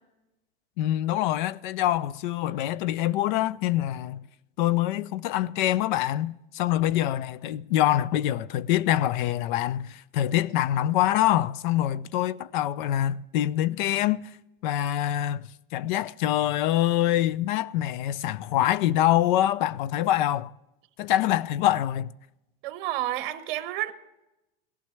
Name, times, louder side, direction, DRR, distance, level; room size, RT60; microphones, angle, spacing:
voice 1, 0.8-4.2 4.6-14.3 14.6-20.5 21.0-22.1, left 13 dB, 55° left, 0.4 m, -25 dB
voice 2, 22.6-23.9, right 14 dB, 60° right, 1.0 m, -30 dB
16.5 x 12.0 x 3.3 m
supercardioid pair, 160°, 29 cm